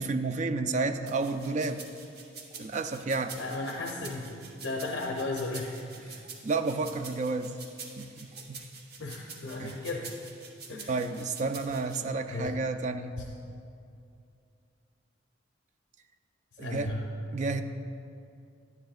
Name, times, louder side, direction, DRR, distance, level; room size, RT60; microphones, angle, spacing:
voice 1, 0.0-1.9 2.5-3.4 6.4-7.6 8.0-8.7 9.6-9.8 10.9-13.3 16.6-16.9 17.3-17.6, right 3 dB, 40° right, 9 dB, 0.4 m, -31 dB
sound 1, 1.1-12.0, right 5 dB, 55° right, 1.0 m, -46 dB
voice 2, 3.4-6.2 9.0-10.1 10.7-11.0 12.3-12.5 13.2-13.3 16.5-17.1, left 2 dB, 80° left, -1 dB, 0.6 m, -35 dB
10.5 x 10.5 x 2.4 m, 2.5 s
head